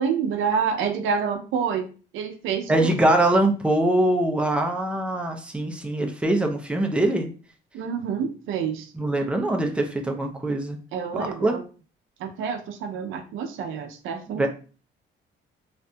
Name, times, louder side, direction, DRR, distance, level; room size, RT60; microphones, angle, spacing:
voice 1, 0.0-1.8 2.1-2.9 7.7-8.9 10.9-11.6 12.2-14.5, right 6 dB, 90° right, 6 dB, 0.5 m, -27 dB
voice 2, 2.7-7.3 8.9-10.8 11.1-11.5 14.3-14.5, right 1 dB, 5° right, 3 dB, 0.5 m, -23 dB
2.6 x 2.5 x 2.2 m, 0.37 s
cardioid pair, 90°, 20 cm